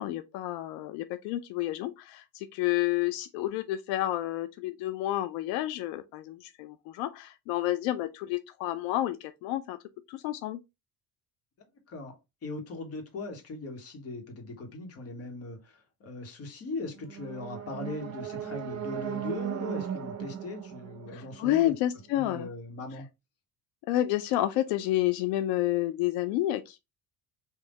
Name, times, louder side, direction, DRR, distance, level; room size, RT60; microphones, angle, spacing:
voice 1, 0.0-9.8 10.1-10.6 21.1-22.5 23.9-26.8, left 14 dB, 90° left, 0.5 m, -30 dB
voice 2, 12.4-21.7 22.1-23.1, left 2 dB, 40° left, 1.5 m, -39 dB
sound 1, 16.9-22.0, right 10 dB, 50° right, 0.8 m, -37 dB
3.6 x 2.7 x 3.9 m
cardioid pair, 120°, 36 cm